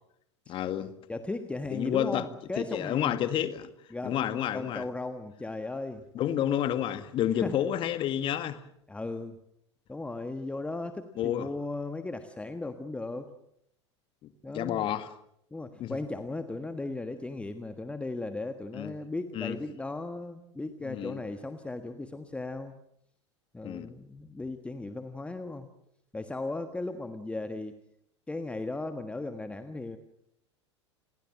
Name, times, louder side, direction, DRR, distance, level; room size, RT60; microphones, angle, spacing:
voice 1, 0.5-0.9 1.7-2.2 2.6-3.7 4.0-4.9 6.1-8.6 11.2-11.5 14.2-15.1 15.8-16.0 18.7-18.9 19.3-19.6 20.8-21.2 23.6-23.9, left 11 dB, 35° left, 1.9 m, -30 dB
voice 2, 1.1-3.2 3.9-6.1 7.4-7.6 8.9-9.4 9.9-13.3 14.4-14.9 15.5-22.7 23.5-25.7 26.1-27.8 28.3-30.0, left 2 dB, 10° left, 1.5 m, -36 dB
29.0 x 21.5 x 7.6 m
figure-of-eight pair, 85°, 15 cm